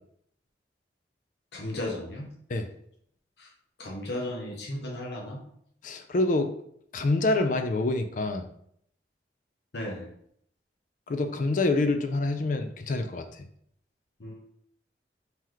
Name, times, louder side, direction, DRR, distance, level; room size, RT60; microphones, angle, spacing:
voice 1, 1.5-2.3 3.4-3.5 3.8-5.4 9.7-10.1 14.2-14.4, left 1 dB, 75° left, -2 dB, 0.8 m, -35 dB
voice 2, 5.8-6.5 6.9-8.5 11.1-13.2, left 2 dB, 45° left, 7 dB, 0.4 m, -26 dB
3.8 x 2.9 x 3.1 m, 0.68 s
head